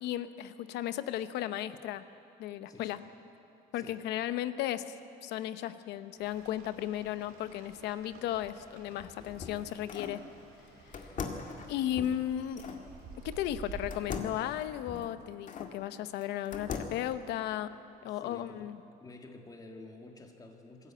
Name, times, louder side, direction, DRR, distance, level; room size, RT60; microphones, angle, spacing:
voice 1, 0.0-2.0 2.4-3.0 3.7-4.8 5.2-10.2 11.7-12.6 13.2-17.7 18.0-18.8, left 12 dB, 85° left, 12 dB, 0.9 m, -35 dB
voice 2, 2.7-3.1 3.8-4.0 18.0-18.7 19.0-20.9, left 2 dB, 20° left, 3 dB, 2.0 m, -50 dB
Rain, 6.2-13.9, right 3 dB, 75° right, 3.1 m, -51 dB
sound 1, 8.9-10.2 10.9-12.8 13.9-15.7 16.2-17.1, left 5 dB, 50° left, 2.0 m, -41 dB
22.0 x 13.5 x 8.7 m, 2.9 s
cardioid pair, 110°, 17 cm